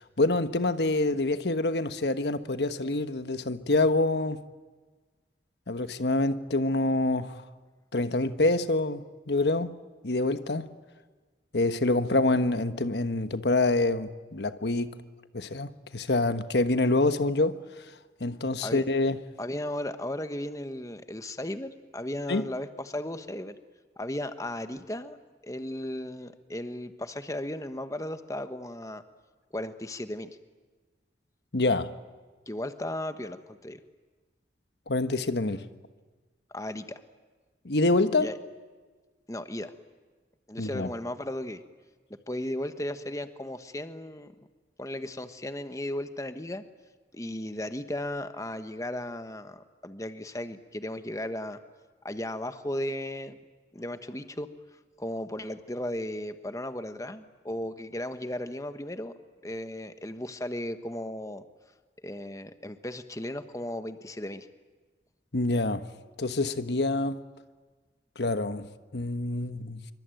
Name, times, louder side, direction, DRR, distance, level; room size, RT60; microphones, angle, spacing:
voice 1, 0.0-4.4 5.7-7.4 7.9-9.7 10.0-10.7 11.5-14.9 15.3-17.6 18.2-19.2 22.3-22.4 31.5-31.9 34.9-35.7 37.6-38.3 40.6-40.9 65.3-65.9 66.2-67.2 68.2-69.8, left 2 dB, 75° left, 1.3 m, -26 dB
voice 2, 19.4-23.5 24.0-25.2 25.4-29.0 29.5-30.4 32.5-33.8 36.5-37.0 38.2-38.4 39.3-39.7 40.5-41.6 42.3-44.3 44.8-46.6 47.1-51.6 52.0-53.4 53.7-54.5 55.0-59.1 59.4-61.4 62.0-64.5, left 1 dB, 20° left, 1.2 m, -35 dB
26.5 x 24.5 x 9.2 m
head